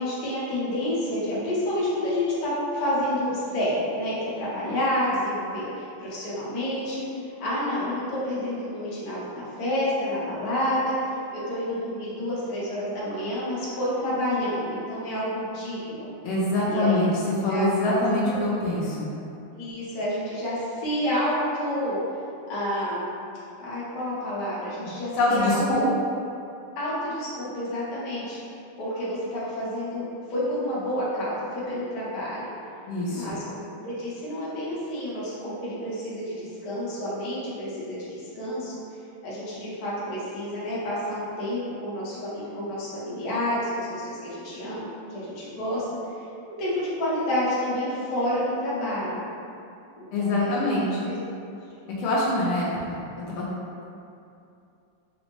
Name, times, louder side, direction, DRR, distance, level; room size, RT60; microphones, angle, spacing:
voice 1, 0.0-7.0 7.4-10.9 11.3-16.1 16.7-17.0 17.5-17.7 18.2-18.4 19.5-22.0 22.5-23.1 23.6-25.9 26.8-28.4 28.8-32.4 33.1-38.7 39.2-45.8 46.6-49.2 49.9-50.7 51.0-51.2, left 1 dB, 55° left, -9 dB, 1.1 m, -29 dB
voice 2, 16.2-17.1 17.4-19.1 24.8-24.9 25.1-25.8 32.9-33.2 50.1-51.1 52.0-53.0 53.3-53.4, left 1 dB, 80° left, -6 dB, 1.4 m, -24 dB
4.3 x 2.0 x 2.9 m, 2.6 s
omnidirectional pair, 2.4 m